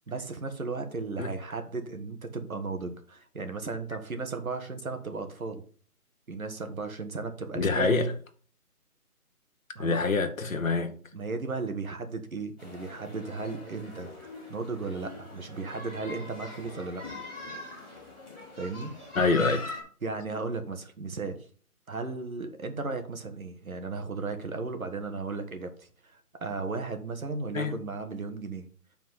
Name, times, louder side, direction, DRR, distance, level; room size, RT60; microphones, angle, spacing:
voice 1, 0.1-5.6 6.3-8.0 9.7-10.1 11.1-17.1 18.6-18.9 20.0-21.4 21.9-28.7, right 3 dB, 65° right, 1.5 m, -35 dB
voice 2, 7.5-8.1 9.8-10.9 19.1-19.7 27.5-27.8, left 3 dB, 60° left, 1.1 m, -26 dB
sound 1, 12.6-19.8, left 3 dB, 5° right, 1.6 m, -41 dB
7.6 x 4.5 x 5.6 m
figure-of-eight pair, 180°, 45 cm